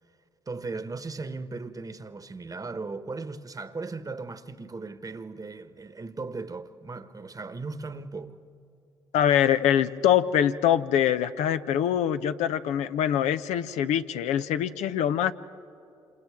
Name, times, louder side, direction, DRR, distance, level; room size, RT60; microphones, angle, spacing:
voice 1, 0.5-8.3, right 3 dB, 30° right, 1.2 m, -37 dB
voice 2, 9.1-15.3, left 10 dB, 75° left, 0.6 m, -24 dB
27.5 x 27.5 x 3.6 m
hypercardioid pair, 50°, 12 cm